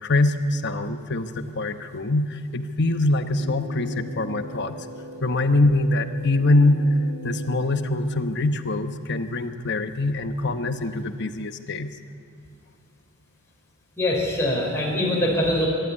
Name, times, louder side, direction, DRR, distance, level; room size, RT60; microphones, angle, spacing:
voice 1, 0.0-4.8 5.2-6.8 7.2-11.9, left 2 dB, 55° left, 9 dB, 1.0 m, -23 dB
sound 1, 3.3-8.3, right 1 dB, 50° right, 2.9 m, -40 dB
voice 2, 14.0-15.7, left 1 dB, 15° left, -4 dB, 4.8 m, -23 dB
24.5 x 11.5 x 9.7 m, 2.2 s
head